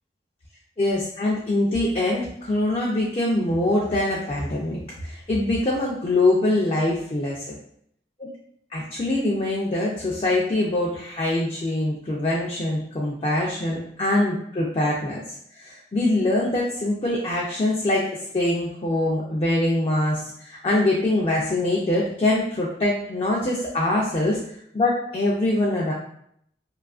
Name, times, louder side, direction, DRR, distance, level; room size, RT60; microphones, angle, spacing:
voice 1, 0.8-7.5 8.2-8.3 8.7-15.2 15.6-24.4 24.7-25.9, left 1 dB, 30° left, -4 dB, 0.3 m, -23 dB
2.7 x 2.3 x 2.3 m, 0.69 s
head